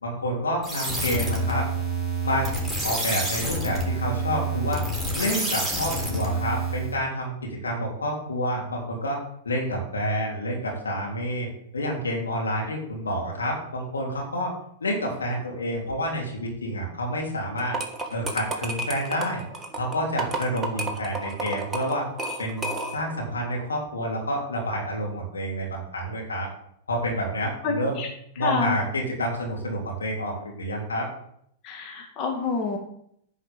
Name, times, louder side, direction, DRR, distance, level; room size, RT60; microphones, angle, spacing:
voice 1, 0.0-1.6 2.2-2.5 2.8-4.8 5.1-9.2 9.4-11.5 11.7-14.5 14.8-17.8 18.1-19.4 19.7-22.1 22.4-26.5 26.9-28.0 28.4-31.1, equal, 85° left, -1 dB, 3.3 m, -28 dB
sound 1, 0.6-7.0, right 2 dB, ahead, 3.5 m, -28 dB
sound 2, 17.6-23.2, right 2 dB, 15° right, 1.8 m, -32 dB
voice 2, 27.6-28.1 28.4-28.8 31.6-32.8, left 4 dB, 40° left, 1 dB, 2.1 m, -28 dB
10.0 x 5.0 x 6.9 m, 0.71 s
hypercardioid pair, 105°, 0 cm